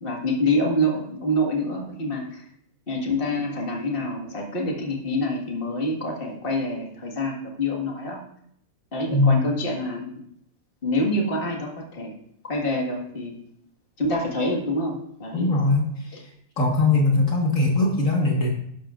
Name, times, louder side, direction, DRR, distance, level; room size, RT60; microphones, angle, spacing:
voice 1, 0.0-2.5 2.9-8.2 8.9-10.2 10.8-12.1 12.4-13.3 14.0-15.5 16.1-16.2, left 1 dB, 35° left, -1 dB, 2.0 m, -26 dB
voice 2, 15.3-16.2 16.6-18.5, left 2 dB, 60° left, -1 dB, 2.2 m, -21 dB
12.0 x 11.5 x 2.5 m, 0.72 s
omnidirectional pair, 1.6 m